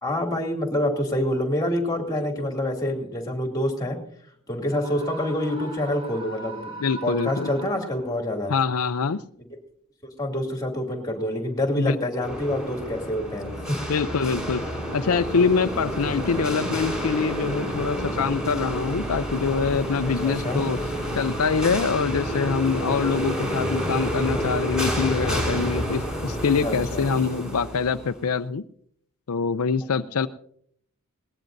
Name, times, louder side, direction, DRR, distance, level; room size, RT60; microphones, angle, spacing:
voice 1, 0.0-4.0 4.5-6.7 7.0-8.5 10.2-13.8 20.2-20.6 26.6-27.1, left 1 dB, 15° left, 3 dB, 2.6 m, -27 dB
Screaming, 4.6-8.3, right 3 dB, 25° right, 5.3 m, -40 dB
voice 2, 6.8-7.5 8.5-9.2 11.8-12.0 13.9-14.6 14.9-20.8 21.1-28.6 29.3-30.3, left 5 dB, 75° left, 10 dB, 0.5 m, -24 dB
sound 1, 12.2-28.3, equal, 5° right, 5.7 m, -29 dB
20.5 x 18.0 x 2.7 m, 0.64 s
head